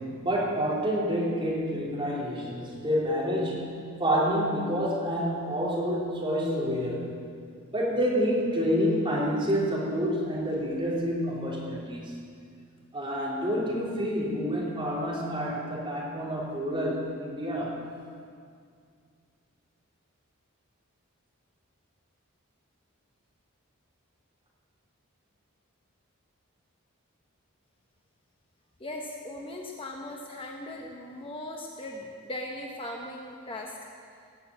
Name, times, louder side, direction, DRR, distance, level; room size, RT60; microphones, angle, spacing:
voice 1, 0.0-7.1 7.7-12.2 12.9-17.8, equal, 25° right, -5 dB, 3.4 m, -28 dB
voice 2, 28.8-33.8, left 1 dB, 25° left, 0 dB, 0.9 m, -39 dB
17.5 x 6.9 x 8.4 m, 2.2 s
head